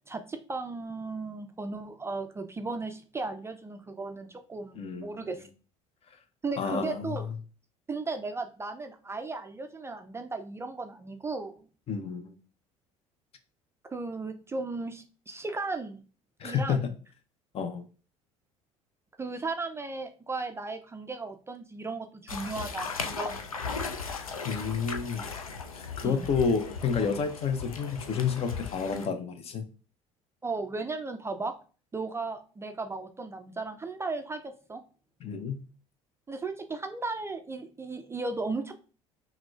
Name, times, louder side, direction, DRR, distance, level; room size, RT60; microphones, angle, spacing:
voice 1, 0.1-5.5 6.4-7.2 7.9-11.5 13.9-16.0 16.4-16.9 19.2-23.9 26.0-26.3 30.4-31.5 31.9-34.8 36.3-38.7, right 3 dB, 15° right, 7 dB, 0.4 m, -36 dB
voice 2, 4.7-5.3 6.6-7.1 11.9-12.4 16.4-16.8 17.5-17.8 24.4-25.3 25.7-29.7 35.2-35.6, left 6 dB, 35° left, 10 dB, 0.5 m, -30 dB
sound 1, 22.3-29.1, left 5 dB, 85° left, 0.4 m, -37 dB
5.8 x 2.1 x 2.3 m, 0.37 s
figure-of-eight pair, 60°, 18 cm